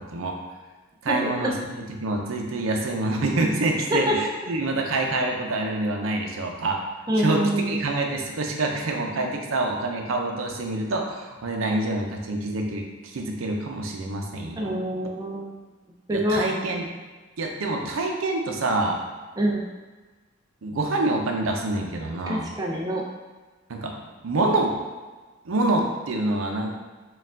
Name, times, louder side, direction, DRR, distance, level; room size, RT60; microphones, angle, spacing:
voice 1, 1.0-6.8 7.2-12.8 13.1-14.8 16.1-16.9 17.4-19.0 20.6-22.5 23.7-24.0 24.2-24.7 25.4-26.7, right 2 dB, 90° right, 2 dB, 0.6 m, -26 dB
voice 2, 7.1-7.8 14.6-15.5 16.1-16.4 19.4-19.6 22.3-23.0 24.4-24.5, equal, 20° right, 0 dB, 0.4 m, -25 dB
4.4 x 2.4 x 3.6 m, 1.3 s
head